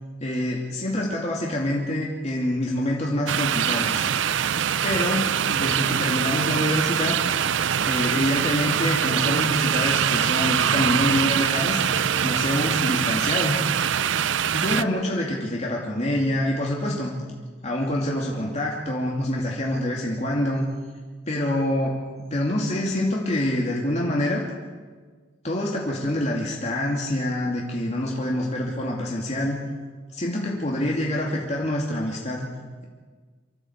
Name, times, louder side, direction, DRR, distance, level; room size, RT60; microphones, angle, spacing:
voice 1, 0.2-4.1 4.8-7.2 7.9-11.8 12.2-13.6 14.5-17.1 17.6-20.7 21.3-22.0 22.3-24.4 25.4-29.6 30.1-32.5, left 1 dB, 35° left, -2 dB, 2.7 m, -26 dB
sound 1, 3.3-14.8, right 8 dB, 75° right, 0.5 m, -23 dB
25.0 x 14.5 x 8.2 m, 1.5 s
head